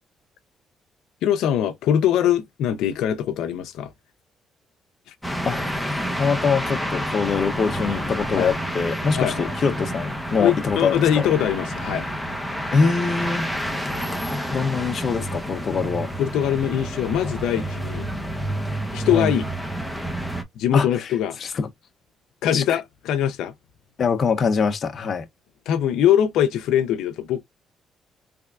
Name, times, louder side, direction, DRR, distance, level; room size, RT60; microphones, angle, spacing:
voice 1, 1.2-3.9 8.4-8.5 9.1-9.5 10.4-12.1 16.2-18.1 18.9-19.5 20.6-21.4 22.4-23.5 25.7-27.4, left 10 dB, 90° left, 0.6 m, -22 dB
sound 1, 5.2-20.4, equal, ahead, 0.9 m, -29 dB
voice 2, 6.2-11.2 12.7-13.5 14.5-16.1 19.1-19.3 20.7-21.7 22.5-22.6 24.0-25.3, left 5 dB, 50° left, 0.7 m, -23 dB
3.5 x 3.3 x 2.4 m
cardioid pair, 90°, 0 cm